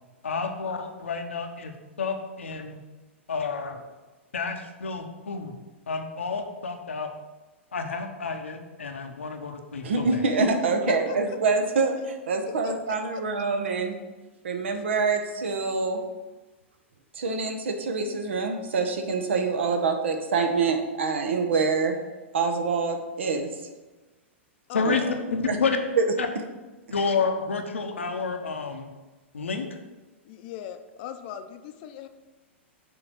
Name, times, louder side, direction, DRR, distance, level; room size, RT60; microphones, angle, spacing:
voice 1, 0.2-2.8 3.3-3.8 4.3-5.5 5.9-7.1 7.7-10.3 24.7-25.8 26.2-26.3 26.9-28.9 29.3-29.7, left 4 dB, 75° left, 5 dB, 0.8 m, -30 dB
voice 2, 9.8-13.9 14.4-16.0 17.1-22.0 22.3-23.5 24.8-25.0 25.5-25.6 26.0-26.1, right 4 dB, 65° right, 5 dB, 0.9 m, -25 dB
voice 3, 10.9-11.4 12.6-13.2 14.7-14.8 24.7-25.2 30.3-32.1, left 10 dB, 45° left, 8 dB, 0.6 m, -38 dB
6.5 x 3.9 x 6.1 m, 1.2 s
figure-of-eight pair, 100°, 7 cm